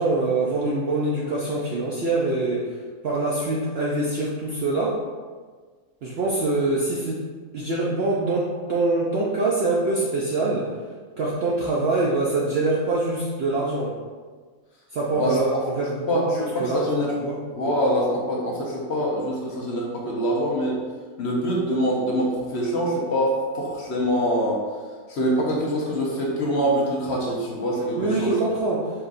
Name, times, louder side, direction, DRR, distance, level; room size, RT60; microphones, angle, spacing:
voice 1, 0.0-2.7 3.0-5.0 6.0-7.2 7.5-10.7 11.2-13.9 14.9-16.0 16.3-17.4 28.0-28.9, right 2 dB, 65° right, -4 dB, 0.6 m, -24 dB
voice 2, 16.1-17.1 17.5-20.8 21.2-24.6 25.1-28.3, equal, 55° left, -3 dB, 0.9 m, -24 dB
4.6 x 3.8 x 2.5 m, 1.5 s
omnidirectional pair, 1.5 m